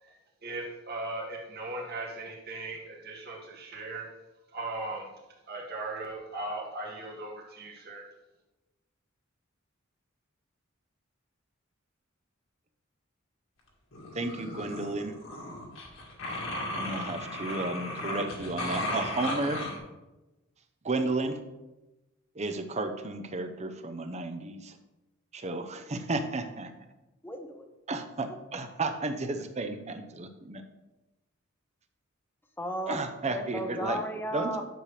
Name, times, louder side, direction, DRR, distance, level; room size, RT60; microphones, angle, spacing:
voice 1, 0.0-4.1 4.5-5.1 5.5-8.0, right 2 dB, 50° right, -2 dB, 1.8 m, -38 dB
sound 1, 13.9-19.8, left 1 dB, 70° left, 1.8 m, -35 dB
voice 2, 14.1-15.1 16.8-19.6 20.8-21.4 22.4-24.8 25.3-26.7 27.9-30.6 32.9-34.0 34.3-34.5, right 2 dB, 35° right, 8 dB, 0.7 m, -33 dB
voice 3, 27.2-27.7 28.3-28.4 32.6-33.0 33.3-34.7, equal, 10° left, 5 dB, 0.8 m, -35 dB
10.0 x 6.6 x 3.3 m, 1.0 s
head